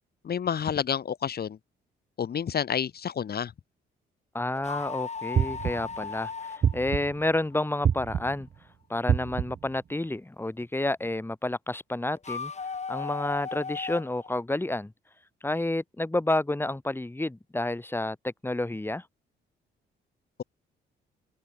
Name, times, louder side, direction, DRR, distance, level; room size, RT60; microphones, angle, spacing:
voice 1, 0.2-1.6 2.2-3.5, left 8 dB, 50° left, 2.9 m, -29 dB
voice 2, 4.3-8.5 8.9-12.5 12.9-14.9 15.4-19.1, left 2 dB, 10° left, 4.4 m, -30 dB
sound 1, 4.5-7.8 12.2-14.3, left 5 dB, 35° left, 3.7 m, -36 dB
sound 2, 5.3-6.0 6.6-7.3 7.8-8.5 9.1-9.7, right 8 dB, 55° right, 6.0 m, -27 dB
cardioid pair, 90°, 20 cm